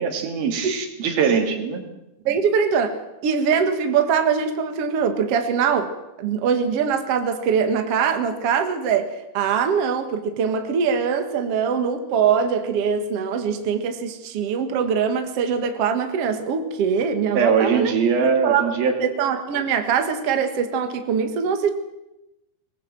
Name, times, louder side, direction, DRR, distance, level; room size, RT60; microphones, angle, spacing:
voice 1, 0.0-1.8 17.4-19.0, right 6 dB, 55° right, 5 dB, 3.9 m, -21 dB
voice 2, 2.2-5.9 6.2-17.9 18.2-21.7, right 6 dB, 80° right, 7 dB, 1.3 m, -22 dB
23.0 x 19.5 x 7.7 m, 0.94 s
omnidirectional pair, 5.7 m